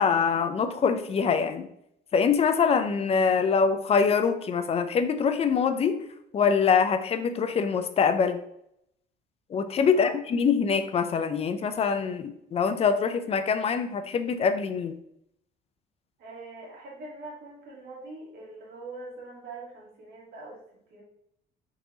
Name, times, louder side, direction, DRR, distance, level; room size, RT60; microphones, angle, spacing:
voice 1, 0.0-1.7 2.1-6.0 6.3-8.4 9.5-15.0, left 6 dB, 35° left, 9 dB, 0.4 m, -24 dB
voice 2, 9.9-10.4 16.2-20.6 20.9-21.0, right 2 dB, 65° right, -2 dB, 1.6 m, -43 dB
3.8 x 2.9 x 3.9 m, 0.76 s
cardioid pair, 110°, 17 cm